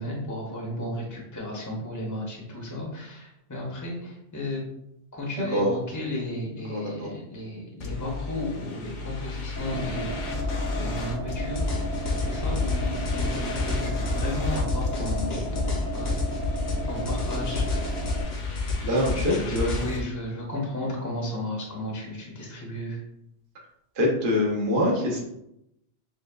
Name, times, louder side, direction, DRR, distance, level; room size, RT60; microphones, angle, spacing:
voice 1, 0.0-4.6 5.1-10.5 10.7-11.9 12.2-16.1 16.9-18.1 19.1-23.0, left 1 dB, 20° left, -2 dB, 0.7 m, -34 dB
voice 2, 6.7-7.1 9.7-9.9 18.8-19.7 24.0-25.2, left 1 dB, 55° right, -2 dB, 1.0 m, -24 dB
sound 1, 7.8-20.0, left 4 dB, 55° left, 0.7 m, -35 dB
sound 2, 9.6-18.2, right 1 dB, 30° right, 0.5 m, -33 dB
sound 3, 11.6-19.8, left 3 dB, 75° left, 1.1 m, -29 dB
6.6 x 2.3 x 2.3 m, 0.80 s
omnidirectional pair, 1.1 m